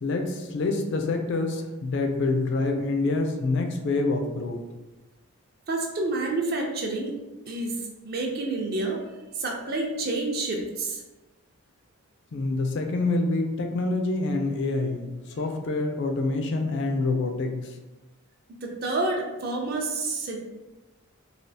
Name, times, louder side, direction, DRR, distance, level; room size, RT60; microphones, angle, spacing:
voice 1, 0.0-4.6 12.3-15.0 15.4-17.7, left 3 dB, 55° left, 4 dB, 0.3 m, -26 dB
voice 2, 5.7-7.2 7.5-9.0 9.3-11.0 18.6-20.4, right 2 dB, 45° right, 1 dB, 0.4 m, -29 dB
3.3 x 2.3 x 2.6 m, 1.1 s
head